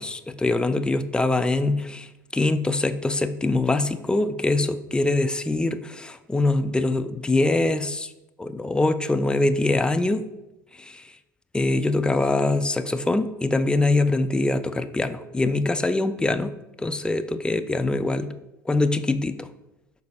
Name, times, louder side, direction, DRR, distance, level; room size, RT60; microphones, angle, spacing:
voice 1, 0.0-2.1 2.3-8.1 8.4-10.3 10.8-11.0 11.5-16.5 16.8-18.3 18.7-19.5, left 2 dB, 10° left, 9 dB, 0.4 m, -23 dB
11.5 x 4.0 x 2.3 m, 0.94 s
figure-of-eight pair, 70°, 10 cm